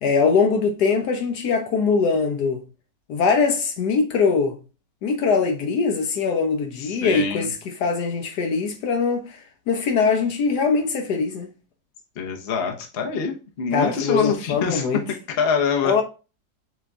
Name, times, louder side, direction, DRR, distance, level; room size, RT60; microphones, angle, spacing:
voice 1, 0.0-2.6 3.1-4.6 5.0-9.4 9.7-11.5 13.7-15.0 15.8-16.0, left 5 dB, 70° left, 1.1 m, -22 dB
voice 2, 6.8-7.5 12.2-15.9, left 6 dB, 45° left, 0.8 m, -25 dB
7.7 x 3.0 x 2.3 m
omnidirectional pair, 2.0 m